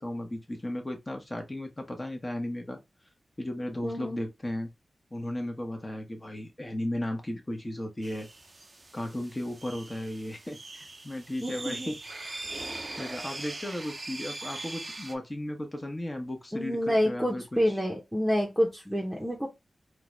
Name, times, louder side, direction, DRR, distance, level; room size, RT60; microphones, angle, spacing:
voice 1, 0.0-2.8 3.4-4.7 5.1-8.3 8.9-12.0 13.0-17.8, left 1 dB, 25° left, 1.2 m, -35 dB
voice 2, 3.8-4.2 11.4-11.9 16.5-19.5, equal, 5° right, 1.0 m, -28 dB
sound 1, 8.0-15.1, right 2 dB, 40° right, 0.7 m, -41 dB
3.8 x 2.5 x 3.1 m
cardioid pair, 55°, 0 cm